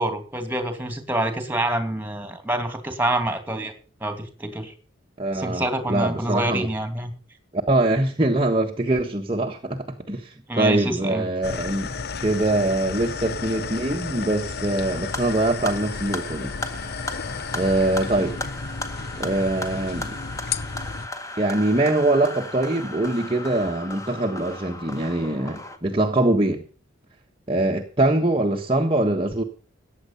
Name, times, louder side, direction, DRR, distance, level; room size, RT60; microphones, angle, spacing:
voice 1, 0.0-3.7 4.0-4.7 5.3-7.1 10.5-11.3, right 1 dB, 10° right, 8 dB, 2.5 m, -26 dB
voice 2, 5.2-6.7 7.5-11.9 12.2-16.5 17.5-18.4 19.2-20.2 21.4-26.6 27.5-29.4, right 2 dB, 25° right, 1 dB, 1.3 m, -23 dB
sound 1, 11.4-21.1, left 4 dB, 50° left, 0.8 m, -33 dB
sound 2, 14.8-25.8, left 2 dB, 15° left, 1.8 m, -36 dB
15.0 x 9.7 x 5.6 m, 0.38 s
head